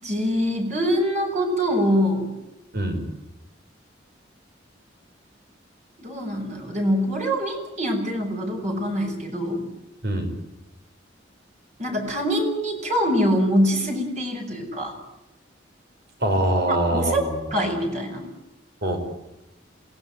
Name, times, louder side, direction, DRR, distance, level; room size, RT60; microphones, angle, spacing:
voice 1, 0.0-2.3 6.0-9.7 11.8-14.9 16.7-17.2 17.5-18.2, equal, 40° right, 2 dB, 6.2 m, -24 dB
voice 2, 2.7-3.0 10.0-10.3 16.2-17.4 18.8-19.0, right 1 dB, 55° right, 5 dB, 5.9 m, -23 dB
27.5 x 18.5 x 9.0 m, 0.95 s
head